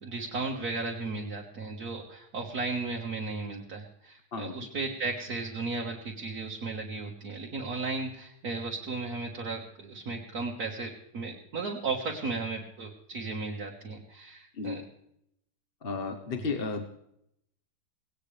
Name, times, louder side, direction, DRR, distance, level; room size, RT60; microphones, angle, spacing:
voice 1, 0.0-14.8 16.3-16.4, right 3 dB, 65° right, -1 dB, 2.1 m, -35 dB
voice 2, 15.8-16.9, left 4 dB, 40° left, 5 dB, 1.2 m, -33 dB
18.5 x 18.0 x 3.3 m, 0.77 s
omnidirectional pair, 1.8 m